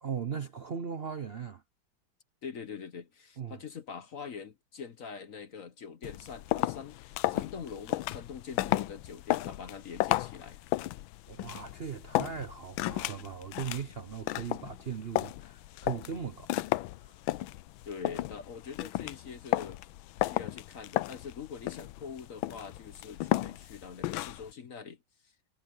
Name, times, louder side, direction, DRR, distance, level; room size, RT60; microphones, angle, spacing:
voice 1, 0.0-1.6 3.4-3.6 11.3-17.1, right 7 dB, 60° right, 0.6 m, -39 dB
voice 2, 2.4-10.6 17.8-19.8 20.2-25.3, left 6 dB, 50° left, 1.2 m, -44 dB
sound 1, 6.0-24.5, left 16 dB, 85° left, 1.4 m, -34 dB
omnidirectional pair, 2.1 m